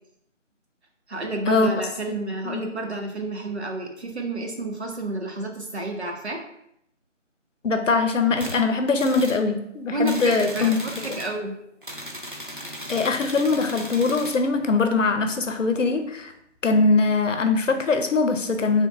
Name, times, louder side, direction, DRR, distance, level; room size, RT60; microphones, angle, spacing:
voice 1, 1.1-6.4 9.9-11.5, right 2 dB, 60° right, 2 dB, 0.9 m, -30 dB
voice 2, 7.6-10.8 12.9-16.3 16.6-18.9, left 4 dB, 80° left, 7 dB, 0.7 m, -22 dB
sound 1, 8.4-8.6 9.0-9.4 10.0-11.4 11.8-14.4, equal, 45° right, 0.4 m, -37 dB
3.3 x 2.1 x 3.9 m, 0.76 s
figure-of-eight pair, 175°, 37 cm